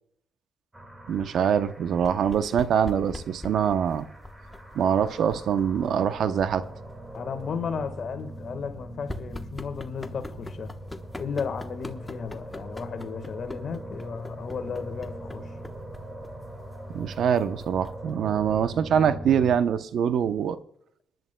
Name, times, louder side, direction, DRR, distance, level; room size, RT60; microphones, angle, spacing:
sound 1, 0.7-19.6, right 1 dB, 20° right, 2.0 m, -42 dB
voice 1, 1.1-4.0 4.7-6.6 16.9-20.6, right 8 dB, 65° right, 0.7 m, -24 dB
sound 2, 2.0-18.1, left 1 dB, 10° left, 1.0 m, -44 dB
voice 2, 7.1-10.7 11.2-15.5, left 6 dB, 55° left, 1.5 m, -34 dB
25.5 x 10.5 x 2.2 m
cardioid pair, 90°, 0 cm